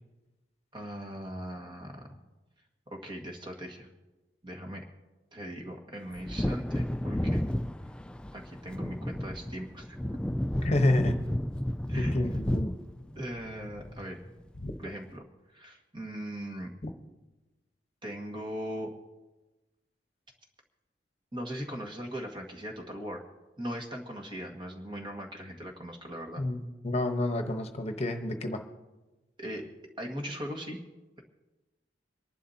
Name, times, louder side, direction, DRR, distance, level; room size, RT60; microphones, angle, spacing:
voice 1, 0.7-2.2 2.9-3.9 4.4-4.9 5.3-7.4 8.3-10.0 11.9-12.1 13.2-14.2 14.8-15.2 15.5-16.7 18.0-18.9 21.3-23.2 23.6-26.4 29.4-29.7 30.0-30.8, equal, 25° right, 1 dB, 1.8 m, -39 dB
Wind / Thunder, 6.1-14.4 14.7-14.8, equal, 5° left, 0.3 m, -32 dB
voice 2, 10.6-11.2 12.0-12.7 14.6-14.7 16.8-16.9 26.4-26.6 26.8-28.6, left 1 dB, 40° left, 5 dB, 1.1 m, -29 dB
26.5 x 11.5 x 2.8 m, 1.1 s
head